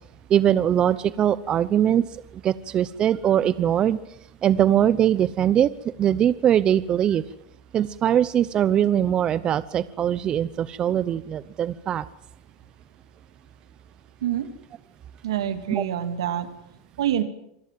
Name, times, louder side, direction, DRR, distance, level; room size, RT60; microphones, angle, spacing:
voice 1, 0.3-4.0 4.4-5.7 6.0-7.2 7.7-12.1 15.7-15.8, right 10 dB, 35° right, 16 dB, 0.8 m, -21 dB
voice 2, 15.2-16.5 17.0-17.2, right 10 dB, 85° right, 10 dB, 2.5 m, -26 dB
26.0 x 20.0 x 7.5 m, 0.79 s
hypercardioid pair, 105°, 2 cm